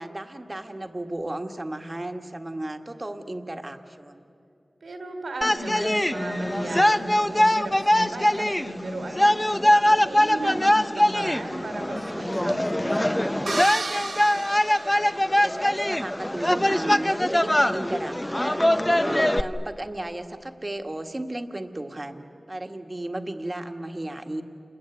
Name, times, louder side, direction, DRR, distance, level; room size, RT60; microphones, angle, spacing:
voice 1, 0.0-4.2 15.3-18.7 19.0-24.4, right 1 dB, 30° right, 5 dB, 1.6 m, -34 dB
voice 2, 4.8-9.4 10.0-13.6, right 1 dB, 90° right, 5 dB, 3.1 m, -34 dB
sound 1, 5.4-19.4, left 1 dB, 15° left, 0.7 m, -22 dB
sound 2, 13.5-15.7, right 3 dB, 70° right, 1.1 m, -33 dB
29.0 x 21.0 x 9.3 m, 2.5 s
wide cardioid pair, 85°, 0 cm